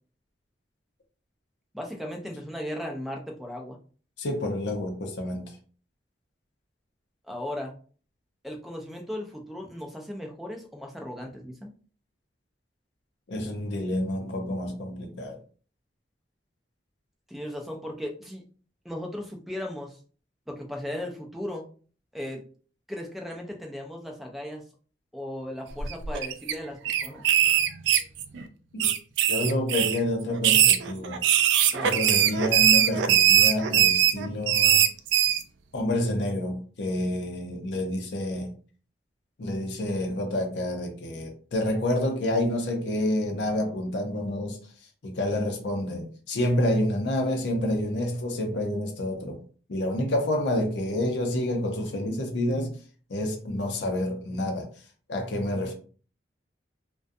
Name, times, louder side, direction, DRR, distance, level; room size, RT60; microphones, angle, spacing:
voice 1, 1.7-3.8 7.3-7.7 8.4-11.7 17.3-18.4 18.8-20.0 20.5-21.7 22.1-22.5 22.9-24.6 25.1-27.2 31.7-32.0, left 1 dB, ahead, 0.4 m, -36 dB
voice 2, 4.2-5.6 13.3-15.4 28.7-28.9 29.3-31.2 31.8-34.8 35.7-38.5 39.4-44.6 45.0-49.4 49.7-52.8 53.1-54.7 55.1-55.7, left 1 dB, 75° left, 0.5 m, -28 dB
sound 1, 25.8-26.5 26.8-28.4 28.8-30.0 30.4-35.4, right 10 dB, 80° right, 0.3 m, -21 dB
2.4 x 2.2 x 2.5 m
head